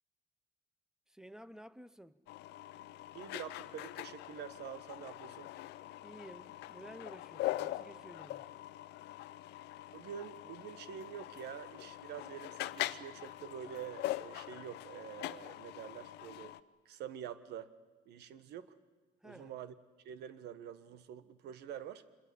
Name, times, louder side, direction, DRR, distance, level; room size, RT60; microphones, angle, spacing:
voice 1, 1.1-2.2 6.0-8.5 19.2-19.5, right 1 dB, 5° right, 0.8 m, -53 dB
sound 1, 2.3-16.6, left 15 dB, 85° left, 0.8 m, -43 dB
voice 2, 3.1-5.5 9.9-16.5 16.8-17.7 18.0-18.7 19.2-19.7 20.0-22.0, right 9 dB, 75° right, 1.4 m, -47 dB
26.0 x 21.5 x 8.5 m
cardioid pair, 110°, 17 cm